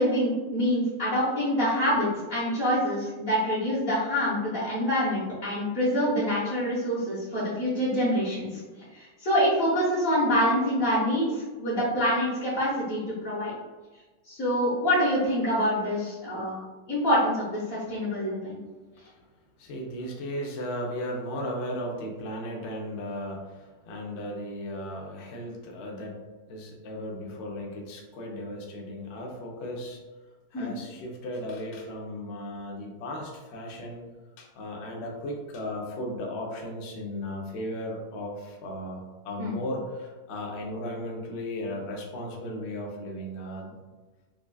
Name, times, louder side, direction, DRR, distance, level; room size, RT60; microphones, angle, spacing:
voice 1, 0.0-8.6 8.9-13.5 14.3-16.6 16.9-18.6 30.5-30.8 39.4-39.6, equal, 40° left, -10 dB, 1.0 m, -26 dB
voice 2, 17.9-18.4 19.0-19.1 19.6-26.2 26.5-30.0 30.5-34.1 34.4-39.0 39.2-43.7, left 1 dB, 70° left, -1 dB, 0.6 m, -36 dB
4.8 x 2.3 x 2.2 m, 1.2 s
omnidirectional pair, 1.9 m